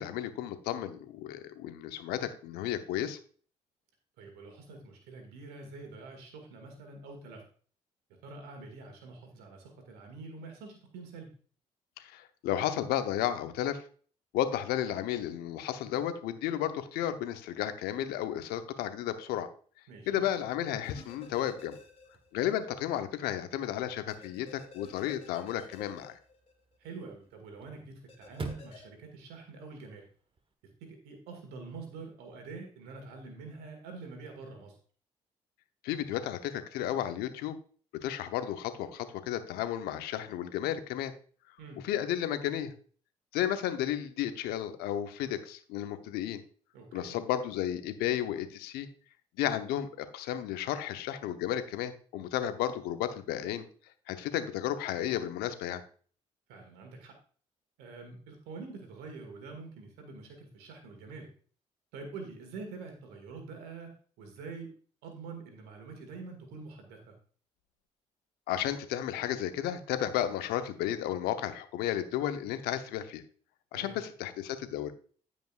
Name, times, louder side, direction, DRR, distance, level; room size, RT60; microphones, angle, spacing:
voice 1, 0.0-3.2 12.0-13.8 14.3-19.5 20.1-21.8 22.3-26.2 35.8-37.5 38.0-41.1 41.8-42.7 43.3-46.4 46.9-48.9 49.4-53.7 54.1-55.8 68.5-73.2 73.7-74.9, left 11 dB, 75° left, 10 dB, 0.9 m, -33 dB
voice 2, 4.2-7.4 8.2-11.3 19.9-20.2 26.8-30.1 30.8-34.8 41.6-41.8 46.7-47.2 56.5-57.1 57.8-61.3 61.9-64.7 65.0-67.2 73.7-74.0, right 4 dB, 80° right, 4 dB, 1.9 m, -46 dB
Chirp tweet / Car / Slam, 20.5-30.5, right 3 dB, 35° right, 1.4 m, -50 dB
sound 1, 20.8-22.5 22.8-22.9 24.1-26.9 28.1-28.8, left 4 dB, 35° left, 2.2 m, -52 dB
15.5 x 5.2 x 2.5 m, 0.43 s
hypercardioid pair, 50°, 16 cm